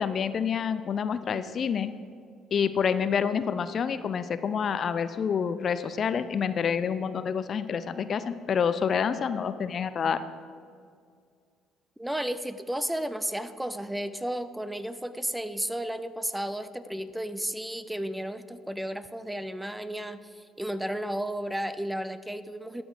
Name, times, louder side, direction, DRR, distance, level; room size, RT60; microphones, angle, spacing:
voice 1, 0.0-1.9 2.5-10.2, left 7 dB, 50° left, 13 dB, 0.4 m, -28 dB
voice 2, 12.0-22.8, right 1 dB, 5° right, 13 dB, 0.5 m, -33 dB
12.5 x 6.1 x 4.9 m, 2.2 s
hypercardioid pair, 55°, 0 cm